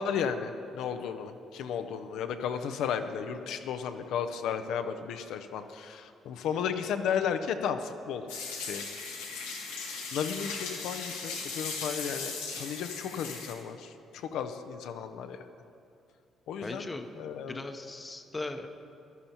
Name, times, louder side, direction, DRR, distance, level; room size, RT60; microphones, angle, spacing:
voice 1, 0.0-8.2 8.6-8.8 9.7-9.8 10.1-15.4 16.5-17.6, left 7 dB, 65° left, 8 dB, 0.6 m, -34 dB
sound 1, 8.3-13.5, left 4 dB, 85° left, 1.2 m, -38 dB
voice 2, 16.6-17.1 17.5-18.7, left 2 dB, 25° left, 6 dB, 0.8 m, -38 dB
15.5 x 12.0 x 2.9 m, 2.5 s
hypercardioid pair, 45°, 0 cm